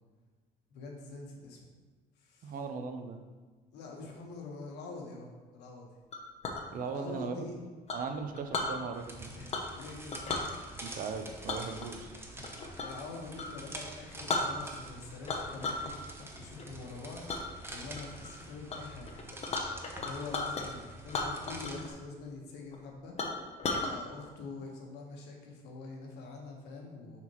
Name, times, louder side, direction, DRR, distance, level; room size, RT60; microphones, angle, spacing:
voice 1, 0.7-1.6 2.2-2.6 3.7-5.9 6.8-7.6 9.4-10.2 12.3-17.4 17.7-19.1 20.0-23.2 23.7-27.2, left 3 dB, 80° left, 0 dB, 1.3 m, -45 dB
voice 2, 2.4-3.2 6.7-7.5 7.9-9.3 10.8-12.1, right 5 dB, 55° right, 7 dB, 0.7 m, -38 dB
Chink clink, 6.1-6.6 7.9-8.7 9.5-9.8 10.1-10.5 11.5-13.0 13.3-13.5 14.0-14.1 14.3-14.9 15.3-15.9 16.3-16.6 17.3-17.4 17.9-18.3 18.7-18.8 19.0-20.7 21.1-21.9 22.1-22.2 22.7-22.8 23.2-23.9, left 3 dB, 40° left, 0.8 m, -35 dB
sound 1, 8.9-21.9, right 1 dB, 15° right, 0.8 m, -47 dB
5.8 x 5.7 x 3.1 m, 1.4 s
cardioid pair, 110°, 17 cm